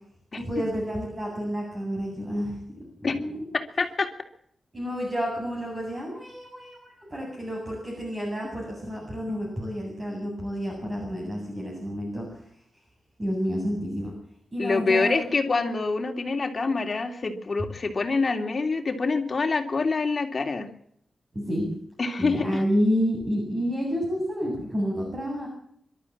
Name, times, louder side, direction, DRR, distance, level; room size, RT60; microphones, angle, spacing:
voice 1, 0.4-3.4 4.7-12.5 13.2-14.1 14.5-15.2 21.3-21.6 22.2-25.5, equal, 25° right, -2 dB, 8.0 m, -29 dB
voice 2, 3.5-4.1 14.6-20.7 22.0-22.5, left 4 dB, 40° left, 5 dB, 3.0 m, -26 dB
26.0 x 13.0 x 8.7 m, 0.68 s
wide cardioid pair, 130°, 0 cm